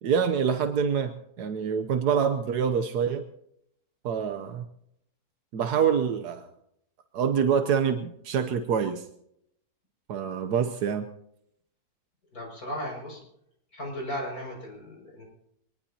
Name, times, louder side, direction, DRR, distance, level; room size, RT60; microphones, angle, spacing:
voice 1, 0.0-3.3 4.0-4.7 5.5-6.5 7.1-9.1 10.1-11.1, right 7 dB, 85° right, 7 dB, 1.4 m, -26 dB
voice 2, 12.3-13.2 13.7-15.2, equal, 65° left, -1 dB, 6.8 m, -36 dB
24.0 x 20.0 x 2.9 m, 0.76 s
omnidirectional pair, 1.7 m